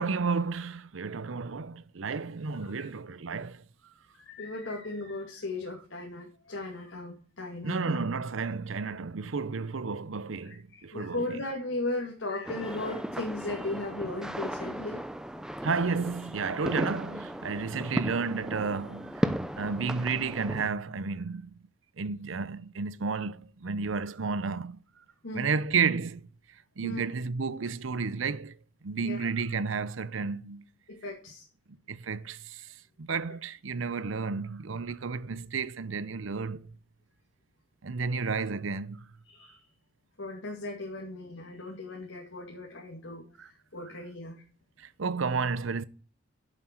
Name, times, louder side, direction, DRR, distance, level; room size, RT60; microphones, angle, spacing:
voice 1, 0.0-3.6 7.6-11.2 15.6-21.5 22.0-24.8 25.3-26.3 26.8-28.6 28.8-30.6 31.9-36.7 37.8-39.1 43.4-43.5 44.8-45.8, right 4 dB, 80° right, 0.7 m, -32 dB
voice 2, 4.1-8.0 8.8-8.9 10.4-15.0 15.6-15.7 25.2-25.5 26.8-27.1 29.0-29.3 30.9-31.4 39.2-39.6 40.2-44.4, left 2 dB, 80° left, 2.3 m, -37 dB
sound 1, 12.4-20.7, equal, 5° right, 0.5 m, -35 dB
9.1 x 7.4 x 4.5 m
head